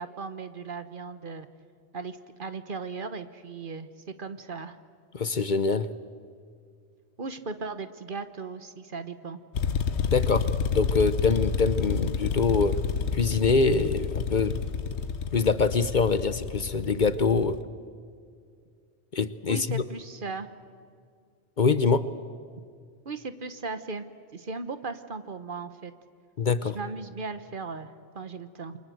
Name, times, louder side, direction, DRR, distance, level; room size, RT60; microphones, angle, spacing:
voice 1, 0.0-1.5 1.9-3.9 4.2-4.8 7.2-9.4 19.5-20.5 23.0-24.0 24.3-25.9 26.6-28.8, right 4 dB, 50° right, 11 dB, 1.3 m, -37 dB
voice 2, 5.1-5.9 10.1-12.8 13.1-14.6 15.3-17.6 19.1-19.8 21.6-22.1 26.4-26.8, left 4 dB, 50° left, 13 dB, 0.9 m, -24 dB
sound 1, 9.6-17.6, left 6 dB, 90° left, 1.3 m, -29 dB
28.0 x 24.0 x 7.8 m, 2.1 s
omnidirectional pair, 1.1 m